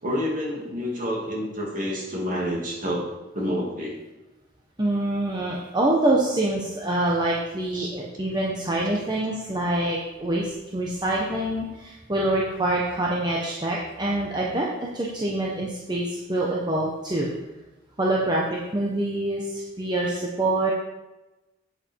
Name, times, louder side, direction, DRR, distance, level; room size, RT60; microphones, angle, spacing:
voice 1, 0.0-3.1 3.3-4.0 7.7-7.9, equal, 45° right, -3 dB, 2.8 m, -28 dB
voice 2, 4.8-17.3 18.0-20.7, right 1 dB, 20° right, -4 dB, 1.2 m, -25 dB
8.7 x 7.4 x 4.7 m, 1.0 s
head